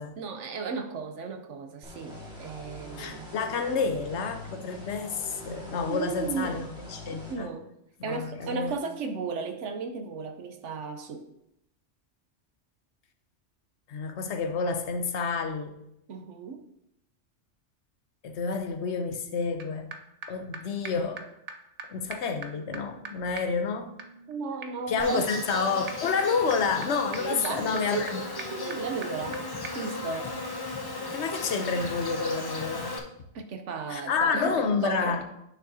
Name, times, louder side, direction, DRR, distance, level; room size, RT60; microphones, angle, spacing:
voice 1, 0.2-3.3 5.9-6.7 7.3-7.7 8.0-11.3 16.1-16.6 24.3-25.3 27.2-29.4 29.7-30.3 33.3-35.2, right 5 dB, 75° right, 7 dB, 1.1 m, -35 dB
sound 1, 1.8-7.3, left 1 dB, 5° right, 1.7 m, -44 dB
voice 2, 3.0-7.5 8.0-8.7 13.9-15.8 18.2-19.9 20.3-21.3 21.9-23.9 24.9-28.2 31.1-33.0 33.9-35.2, left 5 dB, 70° left, 7 dB, 1.0 m, -29 dB
sound 2, 19.6-19.7 19.9-20.0 20.2-20.3 20.5-20.6 20.8-20.9 21.2-21.3 21.5-21.6 21.8-21.9 22.1-29.4 29.6-29.7, right 4 dB, 40° right, 0.6 m, -43 dB
Insect, 25.0-33.0, left 2 dB, 25° left, 0.6 m, -36 dB
9.2 x 6.1 x 2.8 m, 0.81 s
omnidirectional pair, 1.3 m